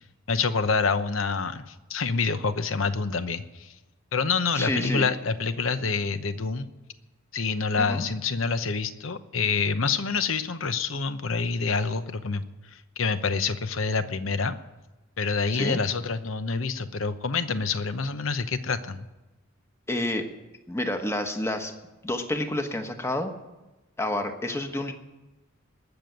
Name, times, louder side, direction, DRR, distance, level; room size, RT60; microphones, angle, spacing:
voice 1, 0.3-3.7 4.1-6.7 7.3-14.6 15.2-19.1, left 4 dB, 70° left, 11 dB, 0.9 m, -27 dB
voice 2, 4.5-5.1 7.7-8.1 15.5-15.8 19.9-20.3 20.7-21.8 22.0-23.3 24.0-24.9, left 1 dB, 15° left, 6 dB, 1.2 m, -29 dB
19.5 x 7.0 x 9.3 m, 1.1 s
head